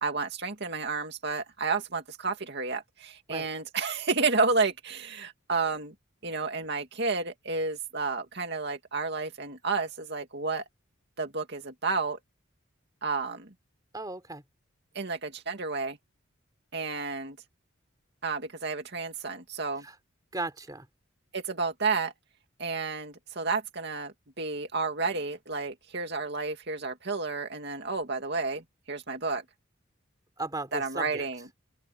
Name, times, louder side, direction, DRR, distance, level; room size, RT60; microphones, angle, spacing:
voice 1, 0.0-5.9 6.2-10.6 11.2-12.2 13.0-13.5 14.9-16.0 16.7-17.4 18.2-19.8 21.3-22.1 22.6-29.4 30.7-31.4, right 4 dB, 55° right, 2.4 m, -31 dB
voice 2, 13.9-14.4 19.8-20.0 20.3-20.9 30.4-31.3, right 2 dB, 20° right, 3.3 m, -36 dB
open air
head